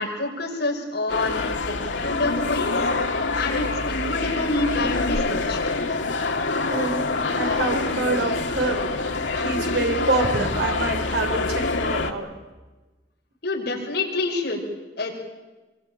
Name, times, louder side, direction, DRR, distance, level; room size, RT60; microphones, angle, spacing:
voice 1, 0.0-2.7 3.3-5.6 13.4-14.6 15.0-15.1, left 2 dB, 55° left, 0 dB, 6.1 m, -27 dB
sound 1, 1.1-12.1, left 3 dB, 85° left, 2.0 m, -25 dB
voice 2, 6.5-7.1 7.3-8.8 9.3-12.3, right 2 dB, 65° right, 4 dB, 5.0 m, -26 dB
27.0 x 23.5 x 9.0 m, 1.2 s
head